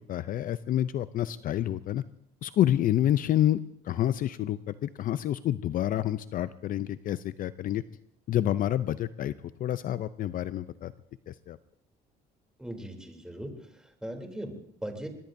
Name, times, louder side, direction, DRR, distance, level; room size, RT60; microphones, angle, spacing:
voice 1, 0.1-2.0 2.4-3.6 3.8-7.8 8.3-9.3 9.6-10.9 11.3-11.6, left 12 dB, 55° left, 14 dB, 0.5 m, -28 dB
voice 2, 12.6-15.1, right 1 dB, 5° right, 3 dB, 3.1 m, -39 dB
23.0 x 20.5 x 2.7 m, 0.73 s
cardioid pair, 110°, 17 cm